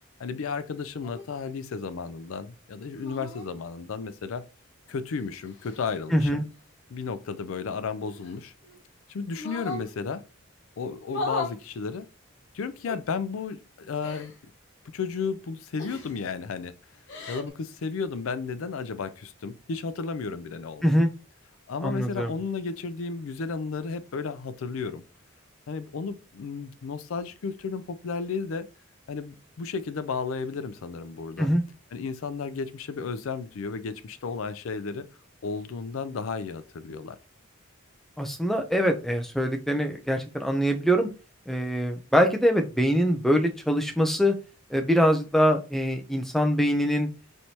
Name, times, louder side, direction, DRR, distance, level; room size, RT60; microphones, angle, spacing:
voice 1, 0.2-4.4 4.9-6.4 6.9-8.5 9.1-10.2 10.8-12.1 12.5-14.3 14.9-16.7 17.3-21.0 21.7-25.0 25.7-28.7 29.1-31.5 31.9-35.1 35.4-37.2, left 5 dB, 75° left, 0.4 m, -33 dB
sound 1, 1.0-1.3 2.9-3.5 4.9-6.0 8.0-8.8 9.3-9.9 11.0-11.6 12.8-13.0 14.0-14.4 15.8-16.2 16.9-17.5, left 3 dB, 60° left, 1.1 m, -36 dB
voice 2, 6.1-6.4 20.8-21.1 21.8-22.3 31.4-31.6 38.2-41.1 41.5-44.3 44.7-47.1, equal, ahead, 0.5 m, -23 dB
4.4 x 3.2 x 2.8 m
head